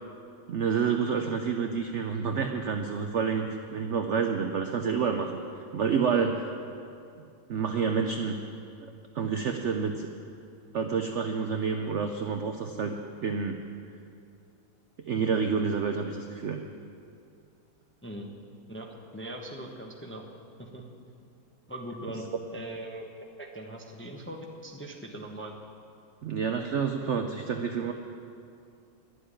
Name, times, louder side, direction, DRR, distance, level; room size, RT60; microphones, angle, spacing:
voice 1, 0.5-5.3 5.7-6.5 7.5-8.4 9.1-10.1 10.7-12.9 13.2-13.6 15.0-16.6 26.2-27.9, right 6 dB, 80° right, 5 dB, 0.6 m, -28 dB
voice 2, 18.7-20.3 20.6-20.8 21.7-23.0 23.4-25.6, right 1 dB, 10° left, 1 dB, 0.6 m, -40 dB
11.0 x 7.9 x 9.9 m, 2.5 s
omnidirectional pair, 2.0 m